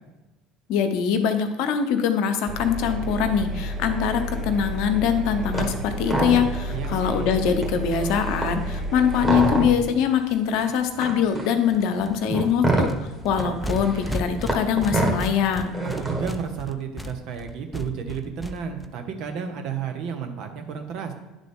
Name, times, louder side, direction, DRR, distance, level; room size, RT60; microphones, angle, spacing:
voice 1, 0.7-12.9 13.2-15.8, left 7 dB, 65° left, 7 dB, 0.7 m, -23 dB
Engine, 2.5-9.7, equal, 30° right, 0.8 m, -31 dB
sound 1, 5.5-5.7 6.0-6.8 7.2-7.3 7.5-10.0 10.6-16.4, right 2 dB, 15° right, 1.7 m, -27 dB
sound 2, 6.5-6.6 6.9-7.0 7.2-7.3 7.4-10.6 11.0-11.4 11.6-18.9, equal, 5° left, 0.5 m, -36 dB
voice 2, 6.7-7.3 15.8-21.1, right 7 dB, 60° right, 5 dB, 0.9 m, -32 dB
9.9 x 3.8 x 3.5 m, 1.1 s
hypercardioid pair, 70°, 0 cm